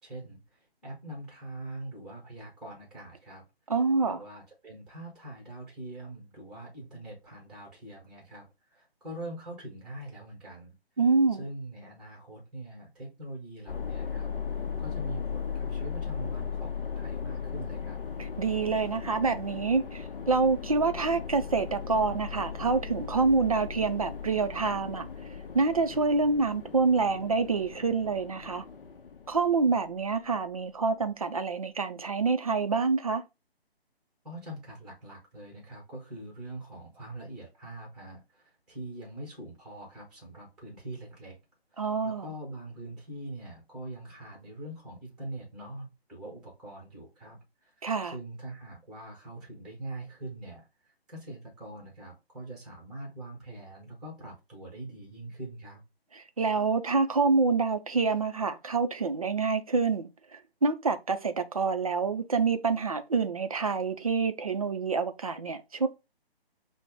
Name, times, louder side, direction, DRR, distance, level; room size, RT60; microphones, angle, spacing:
voice 1, 0.0-3.4 4.1-10.7 11.4-14.3 14.8-18.0 34.2-41.4 41.7-55.8, right 1 dB, ahead, 0.9 m, -43 dB
voice 2, 3.7-4.2 11.0-11.5 18.2-25.1 25.5-28.6 29.3-33.2 41.8-42.3 47.8-48.1 56.1-65.9, right 4 dB, 35° right, 0.4 m, -27 dB
sound 1, 13.7-30.1, left 6 dB, 60° left, 0.6 m, -37 dB
5.5 x 2.0 x 3.5 m
figure-of-eight pair, 145°, 31 cm